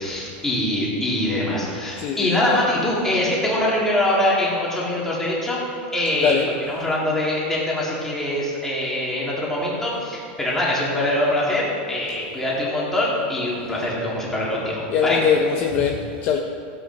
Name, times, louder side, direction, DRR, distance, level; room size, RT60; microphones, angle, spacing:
voice 1, 0.0-5.6 5.9-6.4 6.7-15.2, left 1 dB, 5° left, -6 dB, 2.3 m, -23 dB
voice 2, 2.0-2.6 6.2-6.5 14.9-16.4, left 7 dB, 30° left, 2 dB, 0.6 m, -21 dB
16.0 x 8.4 x 4.0 m, 2.4 s
supercardioid pair, 170°, 5 cm